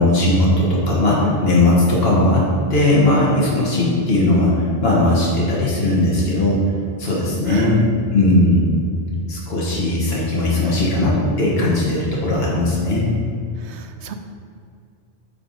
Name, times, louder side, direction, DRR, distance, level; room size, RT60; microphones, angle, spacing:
voice 1, 0.0-2.4 2.7-6.6 7.0-7.8 8.1-8.7 9.3-13.1, left 1 dB, 65° left, -5 dB, 1.8 m, -18 dB
voice 2, 7.5-7.9 13.7-14.1, right 7 dB, 85° right, 6 dB, 0.9 m, -30 dB
8.8 x 5.5 x 4.0 m, 2.3 s
omnidirectional pair, 1.1 m